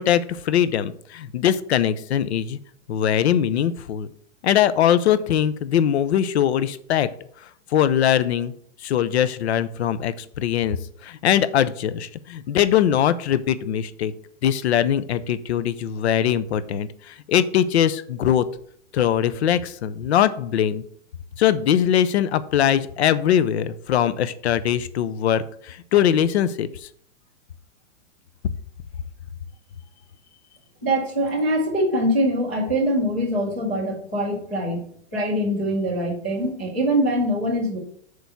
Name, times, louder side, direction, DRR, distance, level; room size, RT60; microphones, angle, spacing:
voice 1, 0.0-2.6 2.9-4.1 4.4-7.1 7.7-8.5 8.8-10.8 11.0-14.1 14.4-18.5 18.9-20.8 21.4-26.9, left 10 dB, 60° left, 14 dB, 0.7 m, -21 dB
voice 2, 30.8-34.8 35.1-37.8, equal, 10° left, -7 dB, 0.4 m, -23 dB
6.7 x 4.6 x 6.8 m, 0.63 s
supercardioid pair, 175°, 38 cm